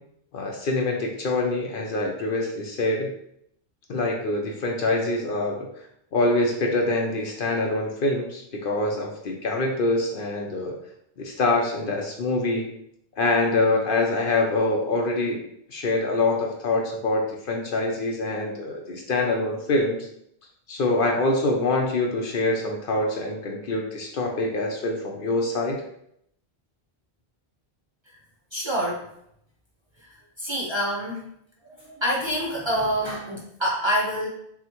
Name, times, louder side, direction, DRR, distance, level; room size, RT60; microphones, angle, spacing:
voice 1, 0.3-3.1 3.9-5.7 6.1-10.7 11.2-12.7 13.2-15.4 15.7-20.0 20.7-25.8, left 2 dB, 60° left, 0 dB, 0.8 m, -25 dB
voice 2, 28.5-29.1 30.0-31.3 31.6-34.3, equal, 30° right, -4 dB, 0.6 m, -27 dB
5.8 x 2.1 x 2.9 m, 0.73 s
omnidirectional pair, 1.1 m